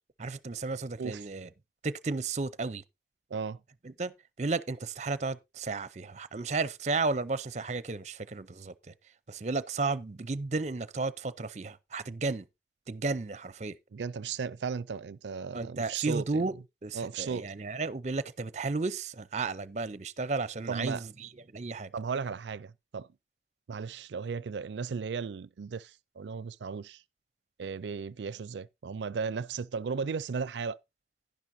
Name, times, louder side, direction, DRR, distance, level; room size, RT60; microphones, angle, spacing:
voice 1, 0.2-1.5 1.8-2.8 3.8-4.1 4.4-8.9 9.3-12.4 12.9-13.8 15.5-16.5 16.8-21.9, right 3 dB, 40° right, 0.6 m, -33 dB
voice 2, 13.9-16.5 16.9-17.5 20.7-21.1 21.9-23.1 23.7-27.0 27.6-30.8, right 5 dB, 85° right, 0.4 m, -35 dB
11.0 x 10.5 x 2.7 m
head